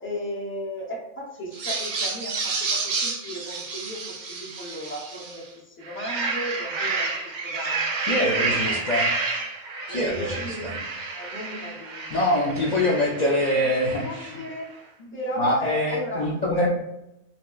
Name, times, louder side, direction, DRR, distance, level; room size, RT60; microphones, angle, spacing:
voice 1, 0.0-8.1 8.3-8.9 9.9-12.1 12.4-12.8 13.2-13.3 13.5-13.7 14.0-16.3, equal, 15° left, -3 dB, 0.5 m, -36 dB
sound 1, 1.5-5.4 5.8-14.5, right 3 dB, 70° right, 0.4 m, -30 dB
voice 2, 8.1-9.1 9.9-10.7 12.1-14.4 15.1-16.7, left 1 dB, 65° left, -4 dB, 0.4 m, -24 dB
4.2 x 2.9 x 2.3 m, 0.88 s
omnidirectional pair, 1.4 m